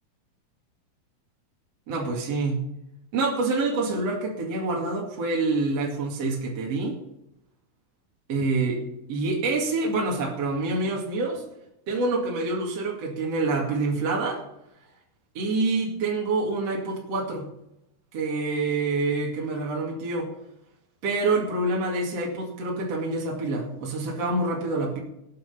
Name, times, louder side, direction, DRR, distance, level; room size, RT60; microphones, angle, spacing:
voice 1, 1.9-2.7 3.1-7.0 8.3-8.8 9.1-11.4 11.9-14.4 15.3-17.4 18.1-20.3 21.0-25.0, right 3 dB, 45° right, -1 dB, 2.8 m, -26 dB
19.0 x 8.4 x 5.5 m, 0.83 s
omnidirectional pair, 4.6 m